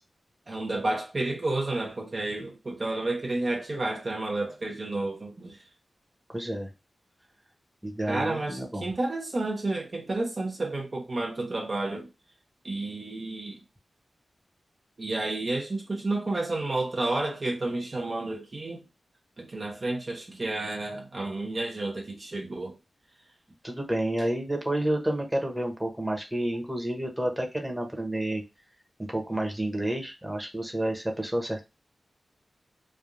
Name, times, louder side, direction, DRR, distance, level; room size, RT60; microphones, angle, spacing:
voice 1, 0.5-5.6 8.1-12.1 12.6-13.6 15.0-18.8 19.4-22.8, right 2 dB, 50° right, 0.7 m, -31 dB
voice 2, 6.3-6.7 7.8-8.9 23.6-28.4 29.1-31.6, right 1 dB, 10° right, 0.9 m, -30 dB
3.3 x 2.3 x 2.5 m
cardioid pair, 55°, 0 cm